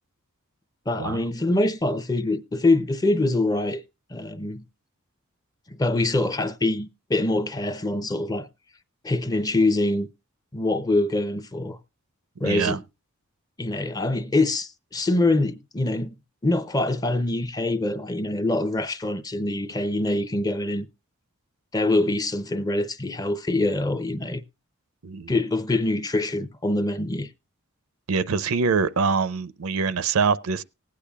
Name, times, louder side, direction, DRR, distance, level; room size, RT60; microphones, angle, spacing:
voice 1, 0.9-3.8 4.1-4.6 5.7-8.5 9.0-10.1 10.5-11.8 12.4-12.8 13.6-16.2 16.4-20.9 21.7-24.4 25.3-27.3, left 2 dB, 15° left, 0.5 m, -24 dB
voice 2, 12.4-12.8 25.0-25.3 28.1-30.6, right 5 dB, 75° right, 0.5 m, -24 dB
19.0 x 8.5 x 2.3 m
head